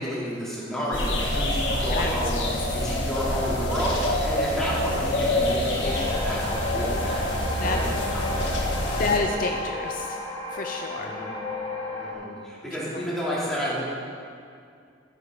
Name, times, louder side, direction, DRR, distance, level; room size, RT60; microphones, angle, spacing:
voice 1, 0.0-2.4 2.7-9.1 11.0-11.3 12.0-13.8, equal, ahead, -9 dB, 3.2 m, -31 dB
sound 1, 0.9-9.2, left 1 dB, 80° left, 1.7 m, -26 dB
sound 2, 5.8-12.1, left 2 dB, 30° left, 1.6 m, -34 dB
voice 2, 9.0-10.2 10.5-11.1 12.9-13.0, left 3 dB, 50° left, 3 dB, 0.6 m, -28 dB
13.5 x 9.9 x 4.0 m, 2.3 s
head